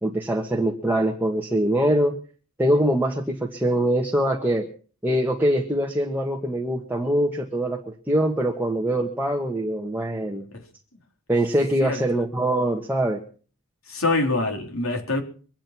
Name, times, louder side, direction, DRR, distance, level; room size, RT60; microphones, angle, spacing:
voice 1, 0.0-2.2 2.6-4.7 5.0-10.5 11.3-13.2, right 1 dB, 10° right, 1.6 m, -23 dB
voice 2, 13.9-15.2, left 2 dB, 70° left, 3.9 m, -25 dB
24.0 x 9.0 x 6.0 m
head